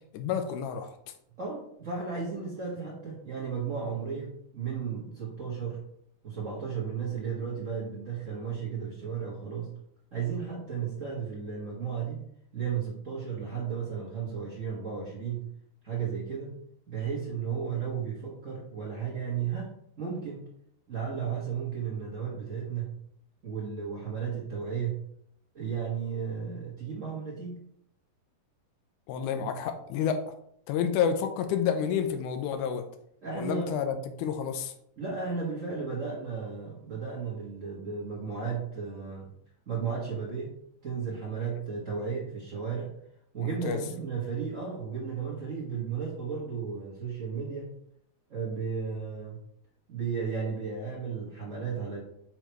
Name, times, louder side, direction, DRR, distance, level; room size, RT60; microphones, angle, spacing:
voice 1, 0.1-0.9 29.1-30.2 30.7-32.9 33.4-34.7 43.4-43.8, left 7 dB, 80° left, 8 dB, 2.1 m, -29 dB
voice 2, 1.4-5.8 6.2-9.7 10.1-12.3 12.5-15.5 15.8-16.6 16.9-20.5 20.9-23.0 23.4-25.0 25.5-27.7 33.2-33.8 35.0-39.3 39.7-40.6 40.8-42.9 43.3-47.7 48.3-49.4 49.9-52.0, right 6 dB, 70° right, -5 dB, 0.7 m, -34 dB
5.6 x 4.6 x 4.5 m, 0.72 s
omnidirectional pair, 3.6 m